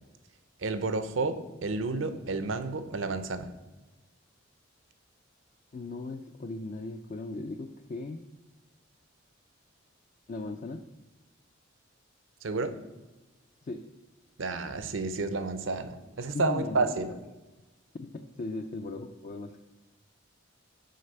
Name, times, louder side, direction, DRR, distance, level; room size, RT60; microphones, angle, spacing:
voice 1, 0.6-3.5 12.4-12.7 14.4-17.1, right 3 dB, 75° right, 11 dB, 0.7 m, -31 dB
voice 2, 5.7-8.2 10.3-10.8 13.6-13.8 16.3-16.9 18.0-19.6, left 3 dB, 40° left, 5 dB, 0.4 m, -37 dB
6.5 x 4.8 x 6.7 m, 1.1 s
head